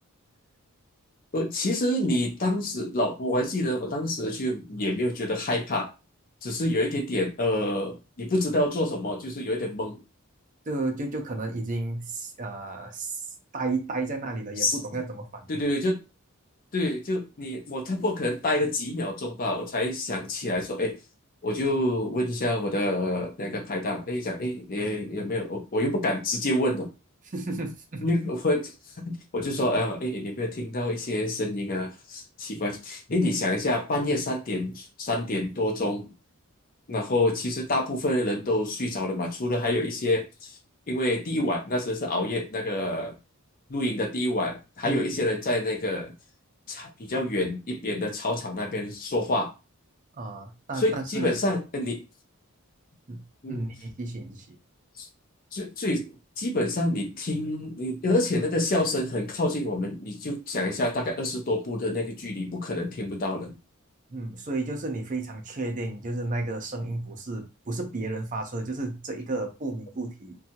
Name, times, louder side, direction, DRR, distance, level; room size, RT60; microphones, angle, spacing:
voice 1, 1.3-5.9 6.4-10.0 14.6-14.8 15.5-16.0 16.7-21.0 21.4-26.9 28.0-28.7 29.1-36.1 36.9-40.5 40.9-43.2 43.7-46.1 46.7-49.5 50.8-52.0 53.4-53.6 55.0-55.1 55.5-56.1 56.4-63.6, left 1 dB, 40° left, 0.6 m, -27 dB
voice 2, 10.7-13.3 13.5-15.6 27.3-28.1 44.8-45.0 50.1-51.4 53.1-54.6 64.1-70.4, right 2 dB, 35° right, 0.5 m, -32 dB
2.7 x 2.3 x 2.8 m
head